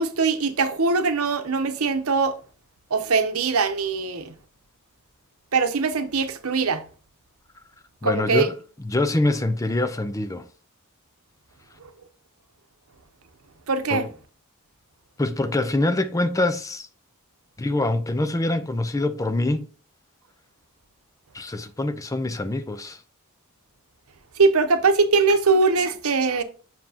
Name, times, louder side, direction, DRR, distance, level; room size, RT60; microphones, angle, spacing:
voice 1, 0.0-2.3 2.9-4.3 5.5-6.8 8.0-8.5 13.7-14.1 24.4-26.4, right 4 dB, 75° right, 0.9 m, -21 dB
voice 2, 8.0-8.5 8.8-10.5 13.9-14.1 15.2-16.9 17.6-19.7 21.3-23.0, left 2 dB, 15° left, 0.5 m, -24 dB
7.4 x 5.9 x 2.8 m
head